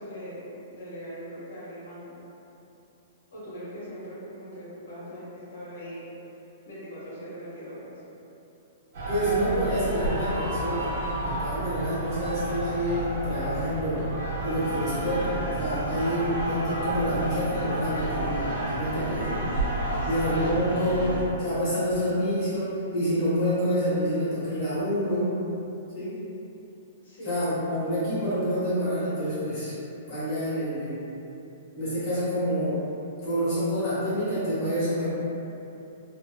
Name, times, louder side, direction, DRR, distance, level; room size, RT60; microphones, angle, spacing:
voice 1, 0.0-2.2 3.3-6.3 6.6-8.0 18.9-19.1 20.0-20.4 27.0-27.4, equal, 85° left, -10 dB, 1.4 m, -41 dB
sound 1, 8.9-21.2, right 2 dB, 50° right, 0.8 m, -31 dB
voice 2, 9.1-10.9 11.2-14.1 14.4-19.2 20.1-21.1 21.4-25.3 25.9-26.2 27.2-29.7 30.1-31.0 31.8-32.8 33.2-35.1, equal, 25° left, -13 dB, 0.9 m, -27 dB
sound 2, 14.4-21.2, equal, 50° left, 1.3 m, -40 dB
3.1 x 2.5 x 2.2 m, 2.9 s
hypercardioid pair, 175°, 0 cm